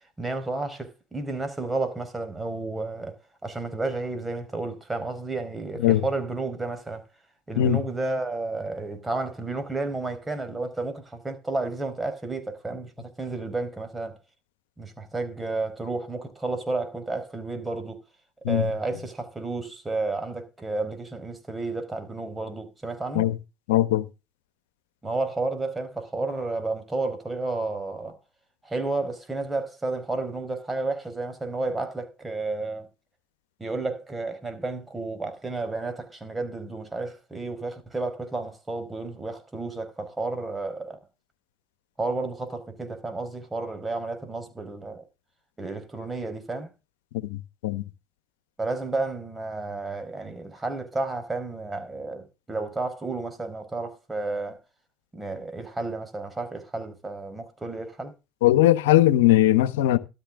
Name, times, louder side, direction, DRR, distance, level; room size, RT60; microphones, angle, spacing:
voice 1, 0.2-3.1 3.4-7.0 7.5-14.2 14.8-18.0 18.5-23.3 25.0-28.2 28.6-32.9 33.6-41.0 42.0-45.0 45.6-46.7 48.6-54.6 55.1-58.1, right 3 dB, 15° right, 4.6 m, -31 dB
voice 2, 23.7-24.0 47.3-47.8 58.4-60.0, left 14 dB, 85° left, 1.1 m, -19 dB
13.5 x 12.5 x 3.7 m
hypercardioid pair, 75°, 0 cm